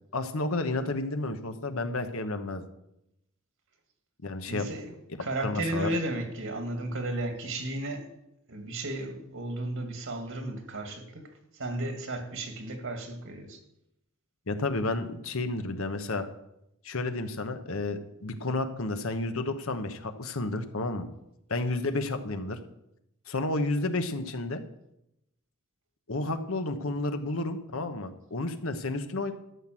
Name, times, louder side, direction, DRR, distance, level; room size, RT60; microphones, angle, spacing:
voice 1, 0.1-2.6 4.2-4.7 5.4-5.9 14.5-16.3 16.8-21.1 21.5-22.6 23.3-24.6 26.1-29.3, left 2 dB, 65° left, 1.2 m, -31 dB
voice 2, 4.5-4.9 5.2-8.1 8.5-13.6, right 1 dB, 65° right, 2.2 m, -34 dB
12.5 x 6.1 x 7.6 m
head